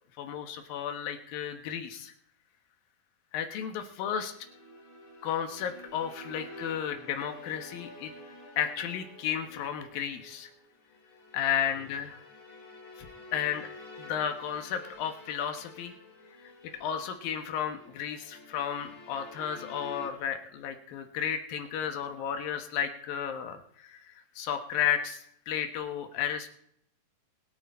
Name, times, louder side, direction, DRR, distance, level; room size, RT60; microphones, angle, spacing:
voice 1, 0.2-2.1 3.3-4.3 5.2-8.1 8.6-10.5 11.3-12.2 13.0-13.1 13.3-13.7 14.0-15.9 16.4-26.5, left 9 dB, 80° left, 6 dB, 3.1 m, -33 dB
sound 1, 4.0-20.1, left 1 dB, 60° left, 5.2 m, -49 dB
22.0 x 8.9 x 4.4 m, 0.69 s
omnidirectional pair, 4.1 m